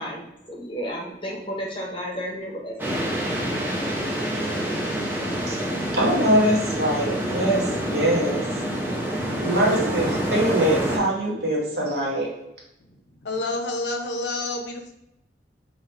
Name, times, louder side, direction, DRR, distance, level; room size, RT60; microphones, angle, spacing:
voice 1, 0.0-2.7 3.0-3.1, equal, 30° left, -1 dB, 0.8 m, -32 dB
sound 1, 2.8-11.0, equal, 10° right, 0.7 m, -27 dB
voice 2, 5.5-8.4 9.4-12.3, right 1 dB, 60° right, -2 dB, 1.1 m, -23 dB
voice 3, 13.2-14.9, left 2 dB, 80° left, 4 dB, 0.6 m, -28 dB
4.0 x 2.9 x 3.2 m, 0.85 s
head